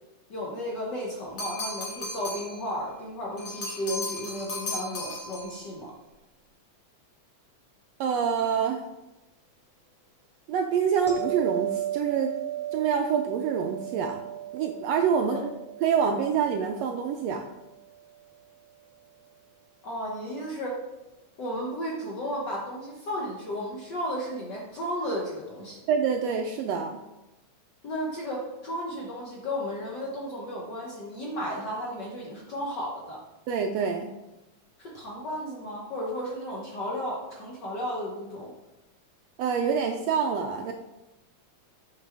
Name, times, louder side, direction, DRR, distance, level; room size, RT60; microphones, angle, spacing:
voice 1, 0.3-5.9 15.2-15.4 19.8-20.8 21.4-25.8 27.8-33.2 34.8-38.5, equal, 70° left, -2 dB, 1.0 m, -34 dB
sound 1, 1.4-2.6 3.4-5.6, left 1 dB, 45° left, 2.3 m, -35 dB
voice 2, 8.0-8.8 10.5-12.3 12.7-14.2 14.5-15.4 15.8-17.4 25.9-27.0 33.5-34.1 39.4-40.7, right 7 dB, 80° right, 4 dB, 1.5 m, -26 dB
sound 2, 11.1-18.1 23.3-23.5, right 12 dB, 25° right, 0.4 m, -36 dB
7.6 x 5.9 x 3.5 m, 0.99 s
omnidirectional pair, 3.4 m